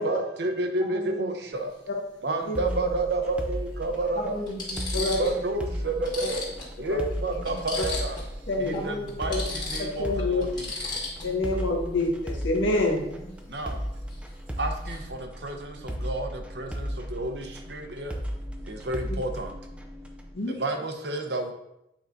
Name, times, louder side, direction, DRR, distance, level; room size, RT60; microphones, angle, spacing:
voice 1, 0.0-1.7 2.2-4.4 4.9-8.2 8.6-10.7 13.5-13.8 14.6-18.1 18.7-19.6 20.5-21.5, right 2 dB, 60° right, 4 dB, 0.9 m, -30 dB
voice 2, 0.8-1.3 2.5-3.0 4.2-5.1 7.3-7.5 8.7-9.2 9.5-9.7 11.2-11.9 13.0-13.6, left 1 dB, 50° left, -3 dB, 1.8 m, -38 dB
sound 1, 1.5-1.7 3.2-3.3 4.0-4.1 4.5-5.4 5.7-5.8 6.0-8.3 8.6-8.8 9.1-11.5 14.1-14.3 14.6-15.1, left 2 dB, 25° left, 1.9 m, -36 dB
sound 2, 2.5-20.3, equal, 5° right, 0.5 m, -36 dB
voice 3, 9.8-10.4 11.2-13.0 20.3-20.6, left 2 dB, 85° left, 0 dB, 1.5 m, -26 dB
8.7 x 4.8 x 2.7 m, 0.83 s
head